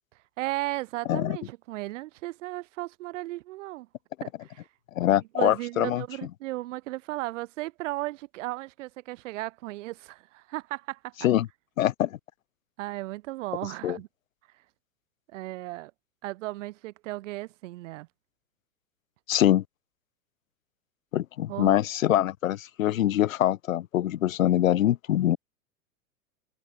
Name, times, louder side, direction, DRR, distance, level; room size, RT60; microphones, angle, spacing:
voice 1, 0.4-3.9 4.2-4.7 5.3-11.1 12.8-14.1 15.3-15.9 16.2-18.1 21.5-21.8, right 18 dB, 65° right, 5.9 m, -35 dB
voice 2, 4.9-6.0 11.2-11.5 11.8-12.2 13.8-14.0 19.3-19.6 21.1-25.4, left 12 dB, 75° left, 1.3 m, -24 dB
hypercardioid pair, 105°, 40 cm